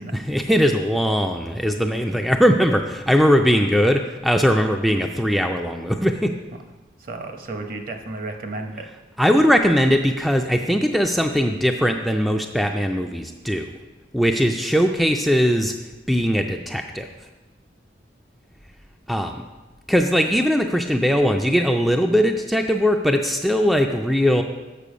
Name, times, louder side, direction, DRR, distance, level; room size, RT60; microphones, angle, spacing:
voice 1, 0.3-6.3 9.2-13.7 14.1-15.7 16.1-17.1 19.1-19.4 19.9-24.4, equal, ahead, 3 dB, 0.3 m, -20 dB
voice 2, 7.0-8.9, right 2 dB, 50° right, 5 dB, 0.9 m, -33 dB
6.9 x 6.9 x 5.0 m, 1.2 s
head